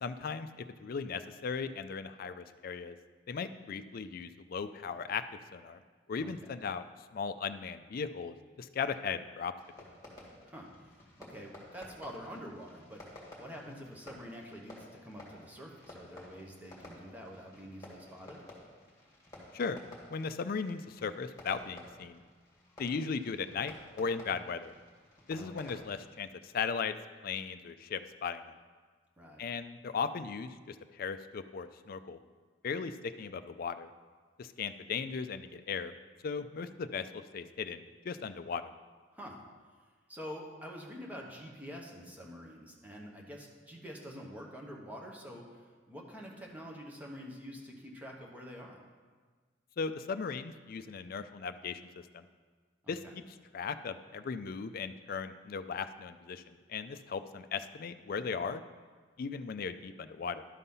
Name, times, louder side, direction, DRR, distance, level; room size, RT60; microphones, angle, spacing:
voice 1, 0.0-3.0 3.3-5.2 5.5-5.8 6.1-6.8 7.1-9.5 19.5-19.8 20.1-22.2 22.8-24.7 25.3-27.0 27.2-28.6 29.4-32.2 32.6-33.9 34.4-35.9 36.2-38.7 49.8-52.2 52.9-53.0 53.5-56.4 56.7-58.6 59.2-60.4, left 5 dB, 50° left, 11 dB, 0.4 m, -37 dB
Fireworks, 9.6-26.1, left 1 dB, 20° left, 2.2 m, -53 dB
voice 2, 11.2-13.0 13.4-18.4 25.3-25.8 29.2-29.5 39.1-39.4 40.1-48.8 52.8-53.1, equal, 10° right, -1 dB, 1.1 m, -47 dB
11.5 x 4.1 x 5.5 m, 1.5 s
head